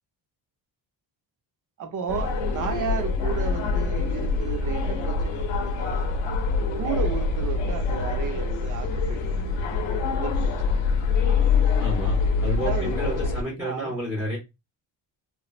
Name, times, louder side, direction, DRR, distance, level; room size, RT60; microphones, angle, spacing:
voice 1, 1.8-6.1 6.8-9.6 9.8-10.8 12.5-13.9, right 6 dB, 45° right, 0.6 m, -34 dB
sound 1, 2.1-13.4, left 4 dB, 75° left, 0.7 m, -25 dB
voice 2, 11.8-14.4, equal, 5° right, 0.8 m, -31 dB
3.1 x 2.1 x 2.4 m
cardioid pair, 155°, 44 cm